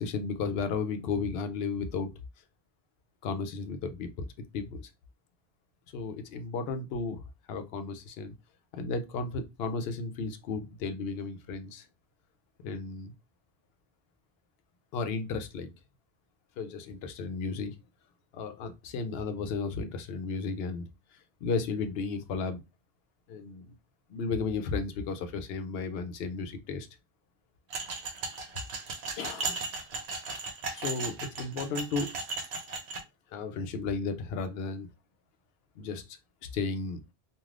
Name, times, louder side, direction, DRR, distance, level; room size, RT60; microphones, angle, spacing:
voice 1, 0.0-2.1 3.2-4.3 4.5-4.8 5.9-8.3 8.7-11.9 12.6-13.1 14.9-15.7 16.6-17.7 18.3-20.8 21.4-22.6 23.3-23.7 24.1-26.9 29.2-29.6 30.7-32.1 33.3-34.9 35.8-36.2 36.5-37.0, left 4 dB, 70° left, 0.8 m, -34 dB
sound 1, 27.7-33.0, right 3 dB, 80° right, 0.9 m, -36 dB
3.2 x 2.3 x 2.4 m
omnidirectional pair, 1.1 m